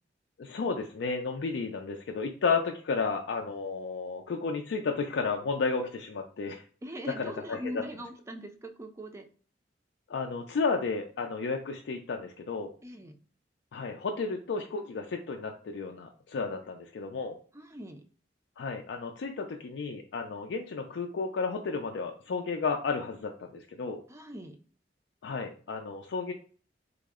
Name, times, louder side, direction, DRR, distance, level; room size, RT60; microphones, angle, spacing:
voice 1, 0.4-6.6 7.2-7.8 10.1-12.7 13.7-17.4 18.6-24.0 25.2-26.3, left 4 dB, 80° left, 3 dB, 0.4 m, -32 dB
voice 2, 6.8-9.3 12.8-13.2 17.5-18.0 24.1-24.6, equal, 15° right, 7 dB, 0.4 m, -41 dB
3.5 x 2.0 x 3.5 m, 0.41 s
head